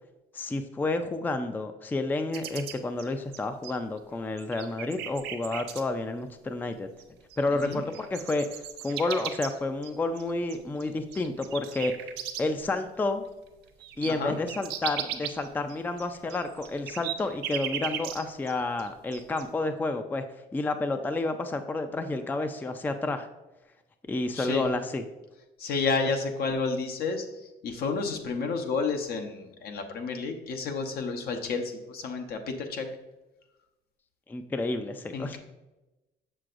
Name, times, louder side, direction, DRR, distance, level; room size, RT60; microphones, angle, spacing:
voice 1, 0.3-6.9 7.4-11.9 12.4-13.2 14.0-20.2 20.5-23.3 24.1-25.0 34.3-35.4, left 2 dB, 10° left, 8 dB, 0.4 m, -30 dB
sound 1, 2.3-4.0 4.4-5.8 7.0-7.1 7.3-12.7 13.1-13.2 13.5-18.5 18.8-19.4, right 10 dB, 85° right, 0.6 m, -37 dB
voice 2, 7.5-7.8 14.1-14.4 24.3-24.6 25.6-27.3 27.6-32.9 35.1-35.4, left 4 dB, 70° left, 5 dB, 0.9 m, -30 dB
6.7 x 6.2 x 2.5 m, 1.0 s
cardioid pair, 110°, 17 cm